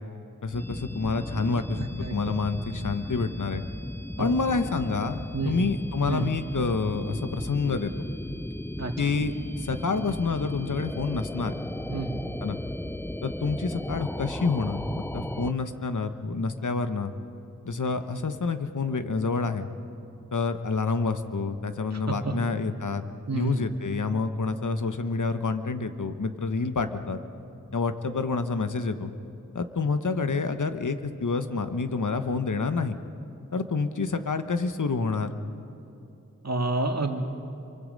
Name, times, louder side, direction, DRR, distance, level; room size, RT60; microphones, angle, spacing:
voice 1, 0.4-1.8 2.1-3.6 4.2-7.9 9.0-11.5 12.4-12.6 13.2-17.1 17.6-19.7 20.3-23.0 23.3-27.2 27.7-29.1 29.5-33.0 33.5-35.3, left 4 dB, 70° left, 9 dB, 1.2 m, -28 dB
sound 1, 0.5-15.5, left 1 dB, 5° left, 0.5 m, -36 dB
voice 2, 1.8-2.4 4.2-4.4 5.3-5.7 6.1-6.3 8.8-8.9 11.9-12.2 21.9-22.3 23.3-23.7 36.4-37.2, right 2 dB, 55° right, 4 dB, 2.0 m, -29 dB
27.0 x 24.0 x 5.4 m, 2.9 s
wide cardioid pair, 70°, 32 cm